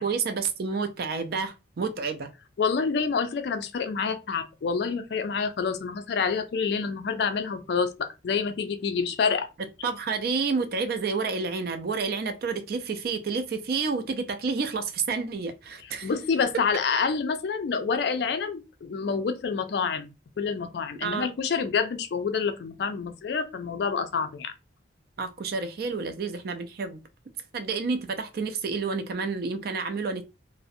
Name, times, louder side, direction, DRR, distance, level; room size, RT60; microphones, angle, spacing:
voice 1, 0.0-2.3 9.8-16.1 21.0-21.3 25.2-27.0 27.5-30.3, right 4 dB, 50° right, 0.4 m, -29 dB
voice 2, 2.6-9.5 16.0-24.5, left 5 dB, 60° left, 0.3 m, -27 dB
2.5 x 2.0 x 2.6 m
head